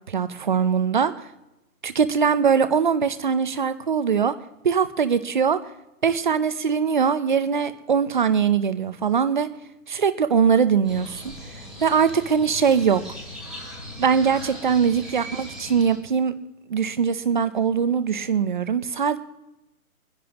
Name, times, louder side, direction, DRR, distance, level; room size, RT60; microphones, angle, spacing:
voice 1, 0.1-1.1 1.8-4.3 4.6-5.6 6.0-9.5 9.9-11.2 11.8-13.0 14.0-16.3 16.7-19.2, right 6 dB, 35° right, 12 dB, 0.6 m, -21 dB
Crow, 10.8-16.0, equal, ahead, 2.1 m, -39 dB
25.5 x 10.5 x 3.0 m, 0.93 s
hypercardioid pair, 165°, 43 cm